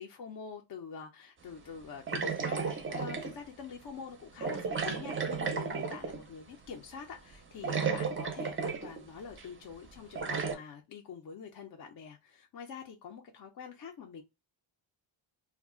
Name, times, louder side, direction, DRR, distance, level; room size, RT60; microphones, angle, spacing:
voice 1, 0.0-14.2, left 6 dB, 50° left, 0.4 m, -45 dB
sound 1, 2.1-3.4 4.4-6.3 7.3-7.4 7.6-9.0 9.4-9.5 10.2-10.5, right 5 dB, 25° right, 0.4 m, -33 dB
2.3 x 2.1 x 3.6 m
cardioid pair, 125°, 49 cm